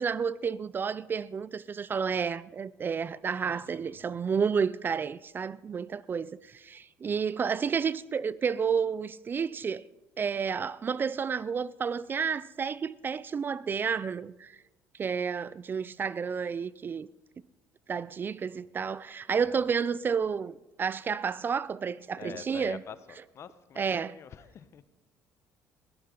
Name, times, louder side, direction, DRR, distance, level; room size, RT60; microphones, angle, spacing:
voice 1, 0.0-9.8 10.2-14.6 15.0-17.1 17.9-22.8 23.8-24.2, right 6 dB, 35° right, 0.4 m, -31 dB
voice 2, 3.5-4.2 19.3-19.7 22.2-24.8, left 8 dB, 50° left, 1.0 m, -47 dB
20.5 x 14.5 x 3.9 m
supercardioid pair, 75°, 6 cm